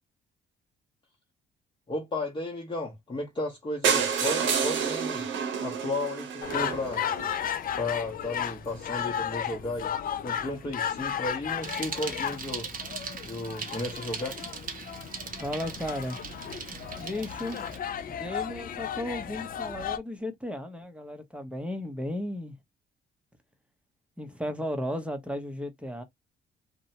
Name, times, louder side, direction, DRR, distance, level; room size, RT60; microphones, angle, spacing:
voice 1, 1.9-5.3 5.6-7.0 7.8-9.9 10.2-12.7 13.2-14.4, left 2 dB, 25° left, 0.8 m, -34 dB
sound 1, 3.8-7.7 8.4-8.5 8.7-8.8 9.1-9.2 9.4-9.5, right 6 dB, 75° right, 0.9 m, -29 dB
sound 2, 6.4-20.0, left 9 dB, 45° left, 0.4 m, -34 dB
Bicycle, 11.6-17.8, right 5 dB, 45° right, 0.7 m, -39 dB
voice 2, 15.4-16.2 17.0-17.6 18.1-22.5 24.2-26.0, left 1 dB, 5° right, 0.7 m, -34 dB
2.7 x 2.1 x 2.7 m
cardioid pair, 90°, 20 cm